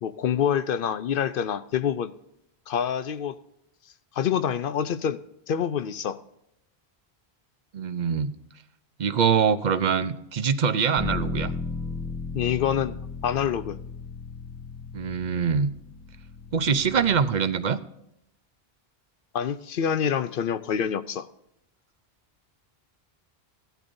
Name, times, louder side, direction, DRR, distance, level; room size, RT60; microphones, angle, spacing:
voice 1, 0.0-2.1 2.7-3.3 4.2-6.2 12.3-12.9 13.2-13.8 19.3-21.3, left 8 dB, 65° left, 14 dB, 0.7 m, -26 dB
voice 2, 7.7-8.3 9.0-11.5 14.9-15.7 16.5-17.8, right 6 dB, 50° right, 13 dB, 0.7 m, -24 dB
Bass guitar, 11.0-17.2, left 3 dB, ahead, 0.9 m, -35 dB
16.5 x 12.0 x 2.6 m, 0.81 s
omnidirectional pair, 1.1 m